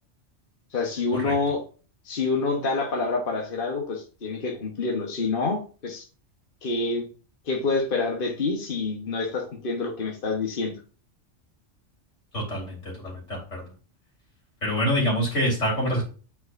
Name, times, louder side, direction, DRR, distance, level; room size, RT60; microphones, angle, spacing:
voice 1, 0.7-1.6 2.0-6.0 6.6-7.1 7.5-10.7, left 3 dB, 50° left, 1 dB, 1.3 m, -27 dB
voice 2, 12.3-13.7 14.6-16.0, equal, 90° left, -2 dB, 3.6 m, -26 dB
9.3 x 4.7 x 2.6 m, 0.37 s
omnidirectional pair, 1.2 m